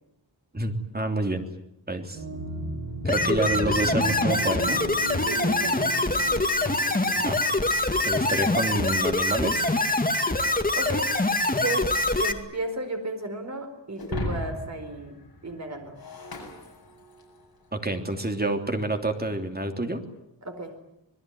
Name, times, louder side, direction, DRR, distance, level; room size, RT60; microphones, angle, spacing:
voice 1, 0.5-1.4 1.9-2.2 3.0-4.8 7.1-7.4 8.0-9.7 17.7-20.0, right 2 dB, 20° right, 5 dB, 3.1 m, -28 dB
sound 1, 2.1-8.7, right 2 dB, 90° right, 7.7 m, -36 dB
sound 2, 3.0-12.3, left 2 dB, 20° left, 2.3 m, -24 dB
voice 2, 5.2-5.9 10.8-11.1 11.5-11.9 12.2-16.0 20.4-20.7, right 2 dB, 35° right, 6 dB, 4.6 m, -34 dB
Shatter, 14.0-17.5, left 2 dB, 50° left, 7.2 m, -36 dB
26.5 x 21.0 x 9.5 m, 0.84 s
wide cardioid pair, 135°, 45 cm